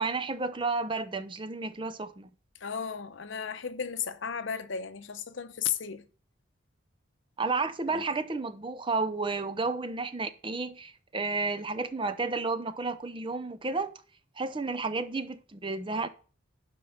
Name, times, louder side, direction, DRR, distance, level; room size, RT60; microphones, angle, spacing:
voice 1, 0.0-2.3 7.4-13.9 14.4-16.1, right 3 dB, 25° right, 0.6 m, -32 dB
voice 2, 2.6-6.1 7.9-8.0, left 7 dB, 70° left, 0.8 m, -34 dB
11.0 x 5.3 x 5.7 m
head